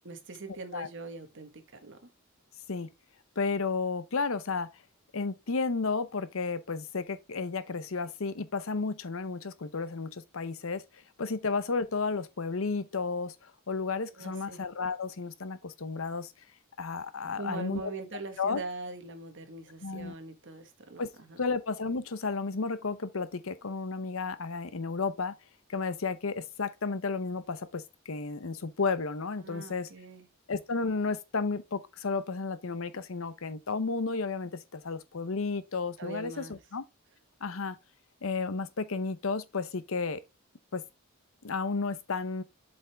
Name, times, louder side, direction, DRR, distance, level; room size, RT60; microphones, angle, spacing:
voice 1, 0.0-2.1 14.2-14.6 17.4-21.4 29.4-30.3 36.0-36.6, right 2 dB, 60° right, 1.5 m, -42 dB
voice 2, 3.4-4.7 5.1-10.8 11.2-16.3 16.8-17.9 18.4-18.6 19.8-20.1 21.0-21.1 21.4-25.3 25.7-29.9 30.5-36.8 37.4-37.8 38.2-40.2 40.7-40.8 41.4-42.4, left 4 dB, 70° left, 0.8 m, -32 dB
7.6 x 5.3 x 3.4 m
head